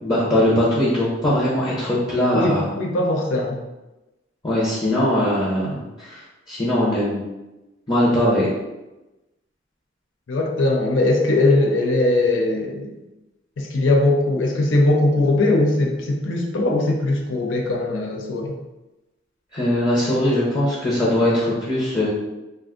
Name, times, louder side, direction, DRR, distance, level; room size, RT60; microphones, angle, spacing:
voice 1, 0.0-2.7 4.4-6.2 6.5-7.2 7.9-8.5 19.5-22.1, left 1 dB, 20° left, -8 dB, 0.6 m, -20 dB
voice 2, 2.3-3.6 10.3-13.0 13.6-18.5, left 2 dB, 90° left, 1 dB, 0.6 m, -20 dB
2.5 x 2.3 x 3.6 m, 1.0 s
head